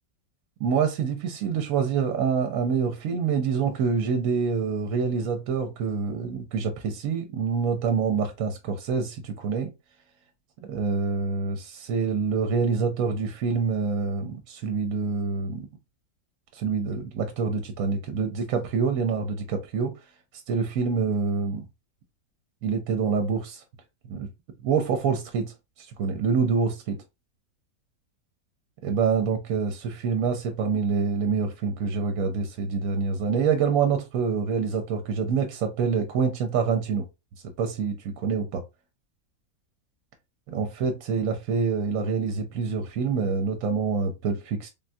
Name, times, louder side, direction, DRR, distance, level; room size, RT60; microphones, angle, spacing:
voice 1, 0.6-9.7 10.6-15.7 16.5-19.9 20.5-21.6 22.6-23.6 24.1-24.3 24.6-25.5 26.0-27.0 28.8-37.1 37.6-38.6 40.5-44.7, right 5 dB, 70° right, 1.0 m, -26 dB
3.5 x 2.2 x 2.6 m
omnidirectional pair, 1.5 m